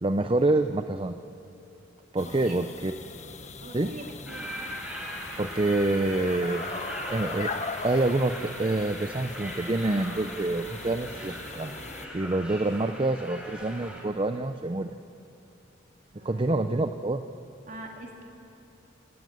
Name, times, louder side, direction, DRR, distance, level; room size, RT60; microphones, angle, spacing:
voice 1, 0.0-1.2 2.1-2.9 3.7-3.9 5.4-6.7 7.1-7.5 7.8-11.7 12.1-14.9 16.2-17.2, right 2 dB, 25° right, 9 dB, 0.6 m, -27 dB
sound 1, 2.2-12.1, left 4 dB, 40° left, 1.1 m, -40 dB
voice 2, 2.2-2.6 3.6-4.6 16.1-16.5 17.7-18.3, right 1 dB, 45° right, 0 dB, 3.6 m, -43 dB
sound 2, 4.3-14.0, equal, 5° right, 4.1 m, -39 dB
26.5 x 17.5 x 9.4 m, 2.8 s
head